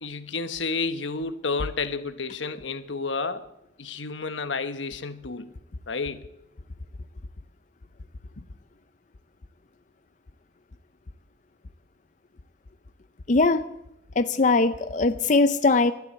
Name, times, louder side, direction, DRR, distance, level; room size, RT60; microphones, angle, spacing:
voice 1, 0.0-3.5 3.8-5.5 5.9-6.3 8.4-8.5, left 4 dB, 85° left, 1.2 m, -31 dB
voice 2, 13.3-13.6 14.2-15.9, left 3 dB, 40° left, 0.5 m, -20 dB
14.0 x 12.0 x 8.3 m
head